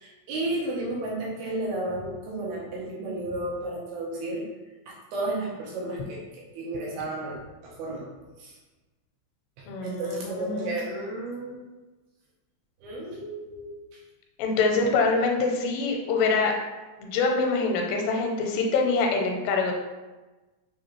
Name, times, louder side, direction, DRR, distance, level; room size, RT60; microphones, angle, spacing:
voice 1, 0.0-4.4 4.9-6.2 6.5-7.4 7.6-8.0 8.4-8.6 9.6-11.6 12.8-13.7, right 2 dB, 80° right, -4 dB, 2.5 m, -32 dB
voice 2, 9.7-10.7 14.4-16.6 17.0-19.7, left 4 dB, 85° left, 1 dB, 2.6 m, -25 dB
6.6 x 2.4 x 3.0 m, 1.2 s
omnidirectional pair, 4.7 m